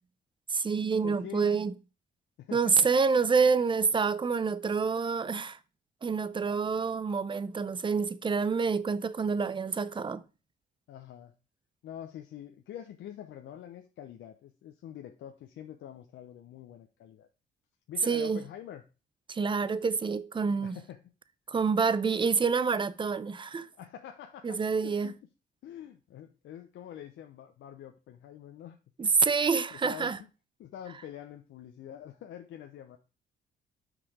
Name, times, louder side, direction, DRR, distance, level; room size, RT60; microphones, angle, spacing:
voice 1, 0.5-1.7 2.5-5.6 6.0-10.2 18.1-18.4 19.3-20.8 21.5-23.7 24.4-25.1 29.0-30.2, right 5 dB, 25° right, 0.6 m, -27 dB
voice 2, 1.0-1.6 2.4-2.9 10.9-11.3 11.8-17.3 17.9-18.8 20.6-21.0 23.7-25.2 25.6-28.8 29.7-30.3 30.6-33.0, left 10 dB, 75° left, 0.8 m, -45 dB
6.2 x 5.0 x 4.9 m
cardioid pair, 90°, 20 cm